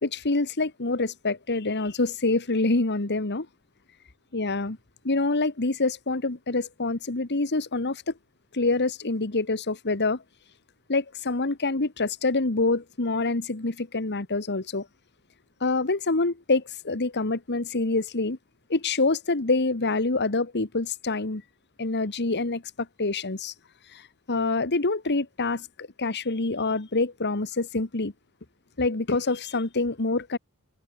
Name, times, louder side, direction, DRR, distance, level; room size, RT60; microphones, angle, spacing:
voice 1, 0.0-3.5 4.3-4.8 5.0-8.0 8.5-10.2 10.9-14.9 15.6-18.4 18.7-21.4 21.8-22.6 23.0-23.5 23.9-24.0 24.3-28.1 28.8-30.4, left 3 dB, 50° left, 1.6 m, -26 dB
head